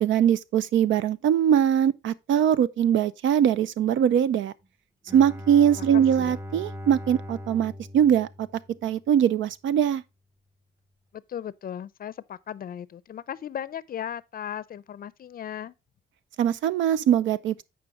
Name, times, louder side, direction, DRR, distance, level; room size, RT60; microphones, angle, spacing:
voice 1, 0.0-4.5 5.1-8.5 8.8-10.0 16.4-17.6, right 9 dB, 75° right, 0.6 m, -22 dB
Bowed string instrument, 5.1-9.0, left 1 dB, 15° right, 0.9 m, -39 dB
voice 2, 11.1-15.7, left 9 dB, 50° left, 0.5 m, -36 dB
8.9 x 5.1 x 3.6 m
cardioid pair, 90°, 20 cm